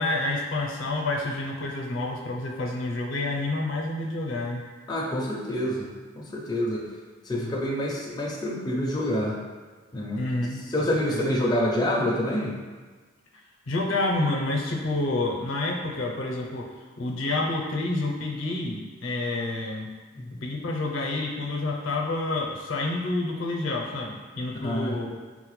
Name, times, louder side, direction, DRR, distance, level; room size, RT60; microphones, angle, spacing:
voice 1, 0.0-4.6 7.3-7.6 10.2-10.6 10.9-11.2 13.7-19.9 20.3-25.1, left 2 dB, 80° left, -1 dB, 0.5 m, -29 dB
voice 2, 4.9-5.9 6.2-6.8 7.3-9.4 9.9-10.2 10.7-12.5 20.2-20.3 24.6-24.9, left 1 dB, 20° left, -3 dB, 0.4 m, -27 dB
3.8 x 2.1 x 3.0 m, 1.4 s
head